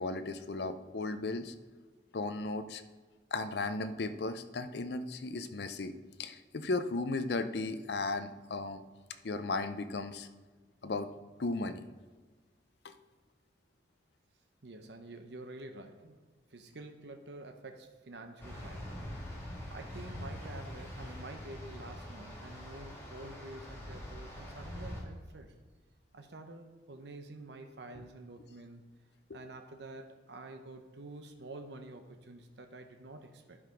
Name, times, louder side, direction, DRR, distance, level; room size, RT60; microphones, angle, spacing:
voice 1, 0.0-1.5 2.1-2.8 3.3-5.9 6.2-8.8 9.2-10.3 10.8-11.1 11.4-11.8 12.8-12.9 29.3-29.4, left 3 dB, 60° left, 10 dB, 0.6 m, -35 dB
voice 2, 14.6-16.2 16.5-19.0 19.7-25.5 26.1-28.8 29.3-33.6, right 2 dB, 65° right, 5 dB, 0.7 m, -48 dB
sound 1, 18.4-25.0, left 1 dB, 15° left, 2.1 m, -44 dB
11.0 x 4.8 x 5.0 m, 1.4 s
head